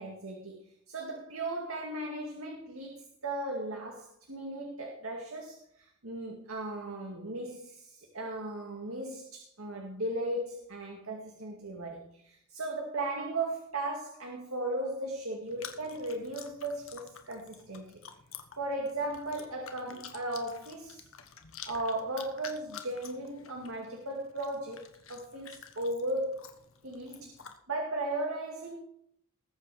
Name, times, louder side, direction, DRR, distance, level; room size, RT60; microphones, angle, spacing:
voice 1, 0.0-18.0 18.6-21.0 21.7-26.4 26.8-27.4 27.7-28.8, right 1 dB, 75° right, 1 dB, 2.3 m, -36 dB
Chewing mastication, 15.5-27.6, left 8 dB, 65° left, 1.5 m, -50 dB
20.0 x 8.4 x 5.0 m, 0.71 s
head